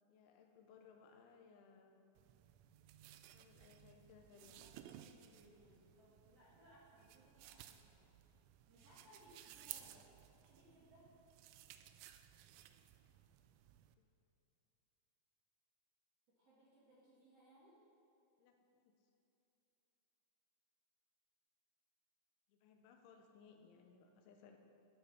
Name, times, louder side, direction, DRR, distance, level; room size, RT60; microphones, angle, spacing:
voice 1, 0.1-2.0 3.3-4.6 14.0-14.1 18.4-18.9 22.5-24.6, left 6 dB, 80° left, 4 dB, 3.2 m, -64 dB
sound 1, 2.2-14.0, right 12 dB, 85° right, 2.8 m, -58 dB
voice 2, 4.5-8.1 8.7-10.1 10.4-11.1 16.4-17.8, right 1 dB, 45° right, -8 dB, 2.2 m, -66 dB
14.0 x 7.4 x 5.7 m, 2.9 s
omnidirectional pair, 5.5 m